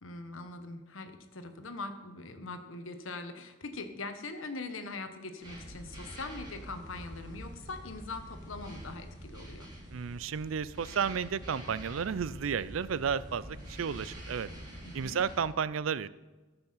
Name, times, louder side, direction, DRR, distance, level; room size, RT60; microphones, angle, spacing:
voice 1, 0.0-9.7 14.8-15.2, left 3 dB, 85° left, 7 dB, 1.2 m, -42 dB
sound 1, 5.4-15.4, equal, 20° right, 3.6 m, -46 dB
voice 2, 9.9-14.5 14.9-16.1, right 7 dB, 90° right, 18 dB, 0.4 m, -32 dB
13.5 x 7.0 x 5.7 m, 1.2 s
head